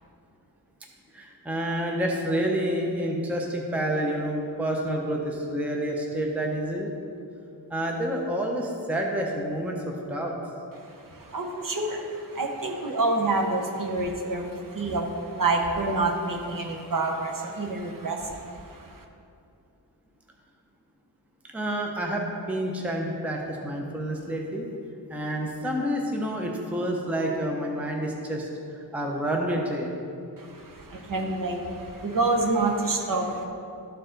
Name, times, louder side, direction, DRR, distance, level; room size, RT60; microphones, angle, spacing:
voice 1, 1.1-6.9 7.7-10.4 21.5-24.6 25.1-28.5 28.7-30.0, right 1 dB, 5° right, 0 dB, 0.6 m, -28 dB
voice 2, 10.8-19.0 30.4-33.4, right 2 dB, 50° right, 2 dB, 0.8 m, -28 dB
12.5 x 4.6 x 3.8 m, 2.6 s
wide cardioid pair, 175°, 43 cm